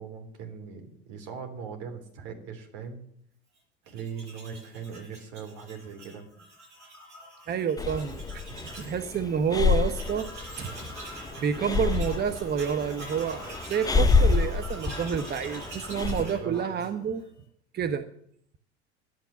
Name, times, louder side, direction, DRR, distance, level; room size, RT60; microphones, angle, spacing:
voice 1, 0.0-3.0 3.9-6.3 8.5-8.6 16.1-16.8, right 6 dB, 60° right, 4 dB, 3.6 m, -40 dB
Tools, 3.9-9.0 9.3-9.4 9.6-17.2, right 1 dB, 85° right, 7.7 m, -44 dB
voice 2, 7.5-8.4 8.8-10.3 10.6-10.7 11.4-17.2 17.7-18.1, right 7 dB, 30° right, 10 dB, 0.9 m, -29 dB
Breathing, 7.8-16.2, left 4 dB, 10° left, 0.8 m, -28 dB
12.0 x 9.2 x 9.4 m, 0.66 s
hypercardioid pair, 80°, 35 cm